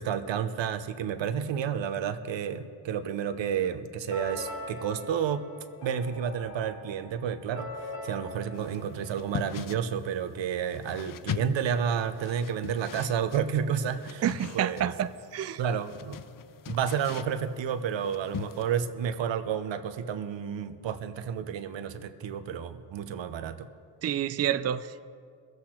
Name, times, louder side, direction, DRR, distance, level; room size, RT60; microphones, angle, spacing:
voice 1, 0.0-5.5 5.8-7.7 8.0-14.2 14.5-14.9 15.6-16.2 16.7-23.7, right 8 dB, 80° right, 10 dB, 0.9 m, -31 dB
sound 1, 4.1-9.8, left 2 dB, 65° left, 3.4 m, -42 dB
sound 2, 8.5-18.8, left 10 dB, 50° left, 0.5 m, -41 dB
voice 2, 14.2-15.6 24.0-25.0, right 10 dB, 35° right, 12 dB, 0.4 m, -29 dB
22.0 x 8.1 x 4.3 m, 2.3 s
cardioid pair, 75°, 44 cm